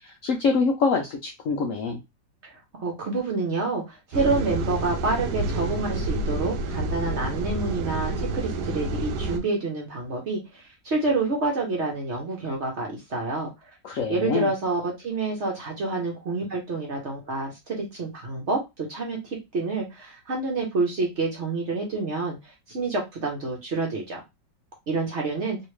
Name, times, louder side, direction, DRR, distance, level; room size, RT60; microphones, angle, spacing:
voice 1, 0.0-2.0 13.8-14.5, left 4 dB, 70° left, 1 dB, 0.7 m, -25 dB
voice 2, 2.4-13.5 14.1-24.2 24.9-25.6, right 3 dB, 50° right, 0 dB, 0.9 m, -28 dB
sound 1, 4.1-9.4, right 2 dB, 75° right, 1.1 m, -28 dB
3.1 x 2.8 x 3.1 m, 0.22 s
omnidirectional pair, 1.9 m